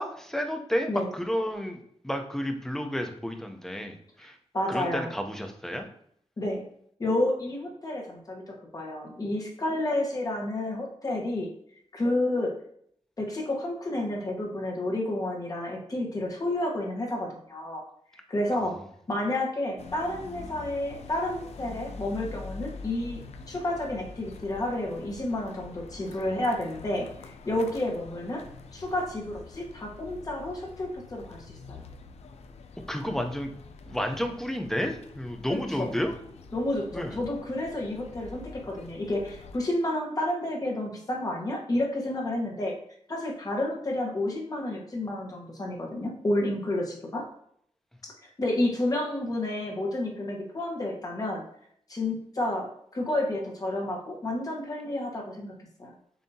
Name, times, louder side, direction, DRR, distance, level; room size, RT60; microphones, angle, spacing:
voice 1, 0.0-4.4 4.7-5.9 32.9-33.5 33.9-36.1 36.9-37.2, equal, 5° left, 4 dB, 0.6 m, -31 dB
voice 2, 4.5-5.1 6.4-6.6 7.0-11.5 11.9-12.6 13.2-17.8 18.3-18.8 19.1-23.2 23.5-28.4 28.7-31.8 35.8-35.9 36.5-42.8 43.1-47.2 48.0-51.4 51.9-55.5 55.8-55.9, left 1 dB, 35° left, 0 dB, 1.1 m, -30 dB
sound 1, 19.8-39.6, left 4 dB, 70° left, 0.5 m, -46 dB
7.1 x 2.7 x 2.7 m, 0.67 s
wide cardioid pair, 175°, 11 cm